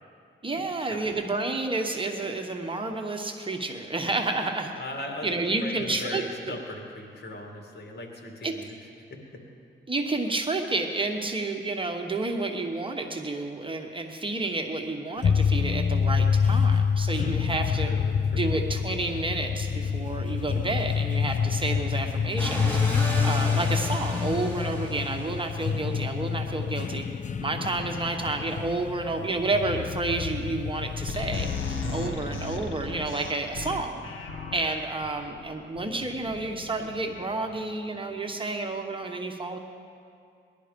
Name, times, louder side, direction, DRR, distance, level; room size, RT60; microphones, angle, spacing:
voice 1, 0.4-4.7 5.2-6.5 8.4-8.5 9.9-17.9 18.3-22.8 23.2-27.0 27.4-34.0 34.5-39.6, right 2 dB, 25° right, 3 dB, 1.2 m, -30 dB
voice 2, 4.8-8.7 9.1-9.4 17.9-18.6 32.0-32.4, left 2 dB, 55° left, 1 dB, 2.4 m, -39 dB
sound 1, 15.2-32.0, left 6 dB, 40° left, 0.4 m, -27 dB
sound 2, 22.4-25.9, equal, 10° left, 3.4 m, -35 dB
sound 3, 31.1-37.5, left 4 dB, 80° left, 1.8 m, -36 dB
19.5 x 11.5 x 5.2 m, 2.4 s
cardioid pair, 95°, 20 cm